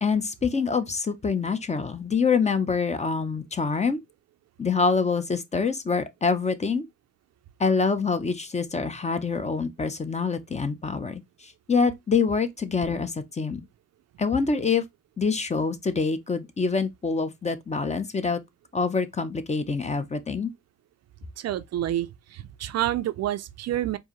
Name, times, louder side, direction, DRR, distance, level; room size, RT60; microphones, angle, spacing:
voice 1, 0.0-4.0 4.6-6.8 7.6-13.6 14.2-14.8 15.2-18.4 18.7-20.5, left 5 dB, 20° left, 0.6 m, -26 dB
voice 2, 21.4-24.0, right 12 dB, 60° right, 0.4 m, -28 dB
4.6 x 2.7 x 3.0 m
cardioid pair, 90°, 30 cm